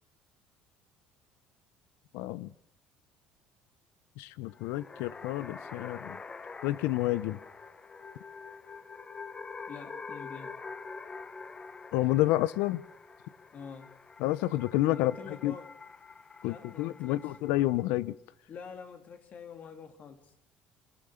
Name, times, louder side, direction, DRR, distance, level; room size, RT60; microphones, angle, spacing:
voice 1, 2.1-2.5 4.2-6.2 6.6-7.4 11.9-12.8 14.2-15.5 16.4-18.2, left 16 dB, 80° left, 0.8 m, -29 dB
sound 1, 4.5-17.9, left 4 dB, 25° left, 1.1 m, -46 dB
voice 2, 9.7-10.6 13.5-13.9 14.9-15.7 16.4-17.3 18.5-20.3, left 6 dB, 45° left, 2.7 m, -46 dB
28.0 x 16.5 x 6.5 m
supercardioid pair, 105°, 4 cm